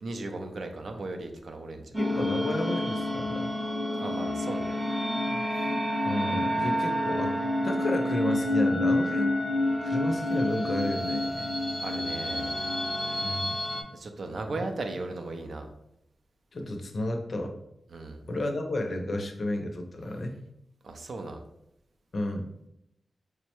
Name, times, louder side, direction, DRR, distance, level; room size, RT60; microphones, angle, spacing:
voice 1, 0.0-2.2 3.9-4.7 5.5-5.7 11.8-12.6 13.9-15.7 17.9-18.2 20.8-21.4, right 2 dB, 60° right, 5 dB, 0.4 m, -37 dB
sound 1, 1.9-13.8, left 1 dB, 5° right, 0.6 m, -28 dB
voice 2, 2.0-3.5 6.0-7.3 7.6-9.3 9.8-11.5 13.2-13.6 16.5-17.5 18.3-20.4 22.1-22.5, left 1 dB, 50° left, 4 dB, 0.5 m, -32 dB
4.5 x 2.1 x 2.9 m, 0.80 s
wide cardioid pair, 140°, 0 cm